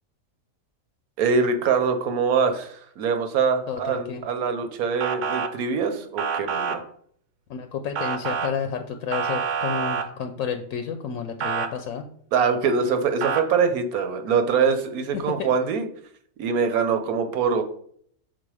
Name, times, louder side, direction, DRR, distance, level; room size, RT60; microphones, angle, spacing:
voice 1, 1.2-6.8 12.3-15.9 16.4-17.6, right 5 dB, 85° right, 7 dB, 1.3 m, -23 dB
voice 2, 3.7-4.2 7.5-12.1 15.1-15.5, left 7 dB, 75° left, 7 dB, 1.0 m, -31 dB
Motor vehicle (road) / Siren, 5.0-5.5 6.2-6.8 8.0-8.5 9.1-10.1 11.4-11.7 13.2-13.4, right 6 dB, 65° right, 1.0 m, -26 dB
6.0 x 4.1 x 4.8 m, 0.62 s
omnidirectional pair, 1.5 m